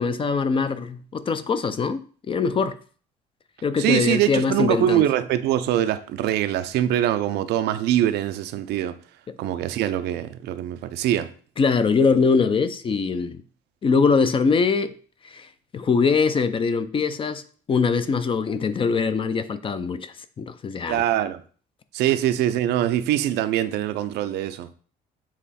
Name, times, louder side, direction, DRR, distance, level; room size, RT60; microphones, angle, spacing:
voice 1, 0.0-2.8 3.6-5.1 11.6-13.4 13.8-14.9 15.2-17.4 17.7-21.0, left 5 dB, 30° left, 0.5 m, -22 dB
voice 2, 3.8-9.0 9.4-11.3 20.9-21.4 21.9-24.7, right 12 dB, 80° right, 0.5 m, -23 dB
7.3 x 3.0 x 4.2 m
cardioid pair, 110°, 17 cm